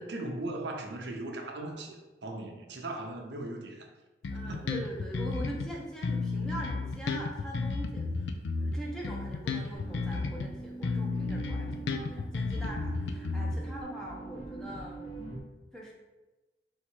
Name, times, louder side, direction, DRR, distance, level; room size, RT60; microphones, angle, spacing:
voice 1, 0.0-3.9 4.4-4.7, right 2 dB, 80° right, 2 dB, 0.6 m, -38 dB
Bass guitar, 4.2-5.7 6.0-10.5 10.8-13.8, left 3 dB, 90° left, 0.4 m, -33 dB
voice 2, 4.3-8.3 8.6-15.2 15.7-15.9, right 1 dB, 5° left, -4 dB, 0.7 m, -42 dB
sound 1, 9.7-15.4, right 3 dB, 30° left, 1.0 m, -43 dB
3.6 x 2.9 x 4.4 m, 1.1 s
head